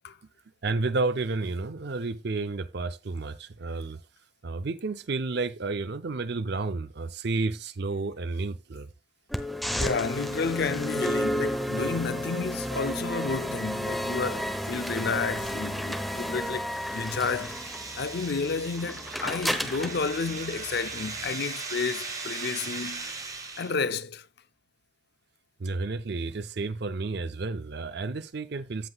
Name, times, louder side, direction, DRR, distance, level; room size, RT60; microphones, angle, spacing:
voice 1, 0.6-4.0 4.4-8.9 25.6-28.9, right 3 dB, 50° right, 0.5 m, -31 dB
sound 1, 9.3-21.3, equal, ahead, 0.8 m, -32 dB
voice 2, 9.7-17.6 18.0-23.1 23.6-24.3, left 4 dB, 50° left, 0.5 m, -31 dB
sound 2, 16.6-23.9, right 3 dB, 15° right, 1.3 m, -40 dB
sound 3, 19.0-24.0, right 6 dB, 35° right, 0.9 m, -43 dB
15.5 x 5.7 x 2.3 m
head